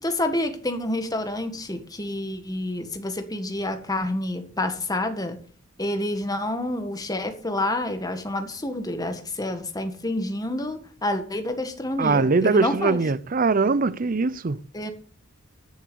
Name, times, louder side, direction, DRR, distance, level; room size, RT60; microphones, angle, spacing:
voice 1, 0.0-5.4 5.8-13.0 14.7-14.9, left 1 dB, 20° left, 1.8 m, -28 dB
voice 2, 12.0-14.6, right 4 dB, 45° right, 0.6 m, -21 dB
13.5 x 7.2 x 6.9 m
head